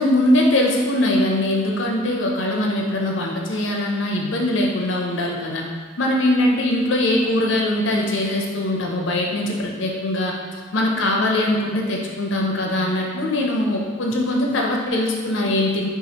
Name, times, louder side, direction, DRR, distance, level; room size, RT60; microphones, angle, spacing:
voice 1, 0.0-5.6 6.0-15.9, left 1 dB, 60° left, 0 dB, 0.6 m, -21 dB
6.2 x 2.4 x 2.9 m, 1.5 s
head